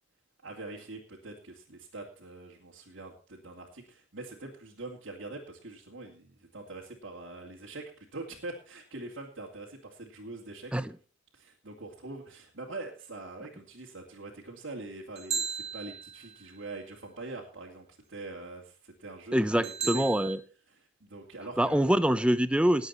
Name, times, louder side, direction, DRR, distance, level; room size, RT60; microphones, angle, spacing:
voice 1, 0.4-10.7 11.3-20.0 20.7-21.9, right 2 dB, 65° right, -3 dB, 2.5 m, -44 dB
sound 1, 15.2-16.5 19.6-20.4, right 6 dB, 30° right, 2.9 m, -35 dB
voice 2, 19.3-20.4 21.6-22.9, right 1 dB, 5° right, 13 dB, 0.6 m, -25 dB
19.5 x 8.0 x 4.3 m, 0.40 s
head